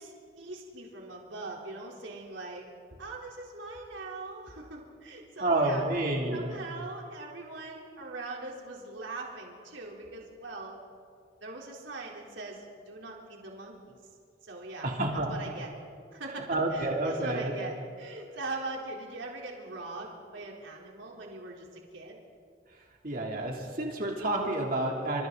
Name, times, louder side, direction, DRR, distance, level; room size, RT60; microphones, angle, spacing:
voice 1, 0.0-2.7 3.0-5.8 6.3-10.8 11.4-13.8 14.4-14.9 15.3-15.7 16.1-22.2, right 2 dB, 85° right, -2 dB, 4.0 m, -41 dB
voice 2, 5.4-6.5 14.8-15.3 16.5-17.5 23.0-25.3, right 2 dB, 50° right, -1 dB, 3.3 m, -29 dB
29.5 x 27.5 x 4.1 m, 2.2 s
head